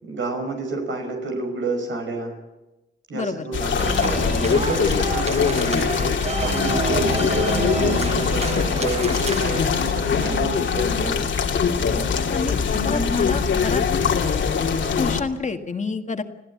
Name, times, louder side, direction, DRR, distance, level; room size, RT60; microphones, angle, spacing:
voice 1, 0.0-2.3 3.1-4.2 4.5-11.3, right 3 dB, 80° right, 3 dB, 5.5 m, -30 dB
voice 2, 3.1-3.5 12.3-12.6 12.8-13.8 15.0-16.2, left 4 dB, 40° left, 6 dB, 1.8 m, -27 dB
sound 1, 3.5-15.2, left 6 dB, 80° left, 2.3 m, -22 dB
sound 2, 3.8-9.7, right 4 dB, 35° right, 1.0 m, -29 dB
27.0 x 15.5 x 8.6 m, 1.0 s
wide cardioid pair, 100°, 19 cm